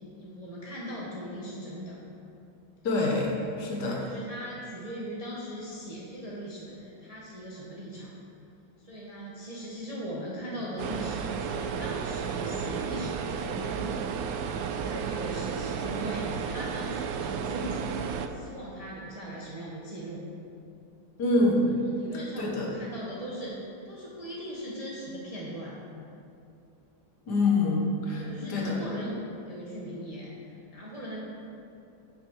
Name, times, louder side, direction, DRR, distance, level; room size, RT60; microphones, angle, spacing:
voice 1, 0.1-2.0 3.7-8.1 8.8-13.9 14.4-17.9 18.3-20.2 21.9-23.5 23.8-25.8 28.2-31.2, equal, 25° right, -6 dB, 1.0 m, -39 dB
voice 2, 2.8-3.3 3.6-4.0 21.2-21.7 22.4-22.7 27.3-28.8, left 2 dB, 65° left, -2 dB, 1.9 m, -25 dB
sound 1, 10.8-18.3, right 7 dB, 75° right, 0.8 m, -33 dB
9.5 x 6.0 x 4.7 m, 2.6 s
omnidirectional pair, 2.0 m